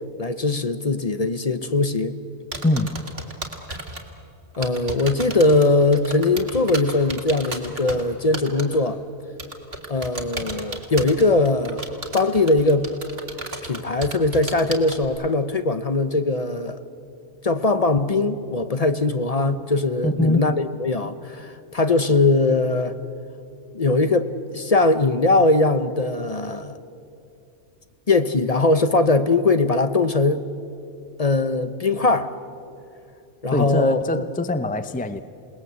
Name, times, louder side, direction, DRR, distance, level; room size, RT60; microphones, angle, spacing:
voice 1, 0.2-2.2 3.7-3.8 4.6-9.0 9.9-11.9 12.1-12.9 13.6-16.8 17.4-23.0 23.7-26.8 28.1-30.4 31.2-32.3 33.4-34.2, left 2 dB, 35° left, 0.8 m, -21 dB
sound 1, 2.5-4.0 4.5-8.0 8.3-8.8 9.4-15.1, right 2 dB, 55° right, 2.4 m, -33 dB
voice 2, 2.6-3.1 20.0-20.5 33.5-35.2, left 2 dB, 10° left, 0.5 m, -23 dB
28.0 x 19.5 x 8.1 m
omnidirectional pair, 1.2 m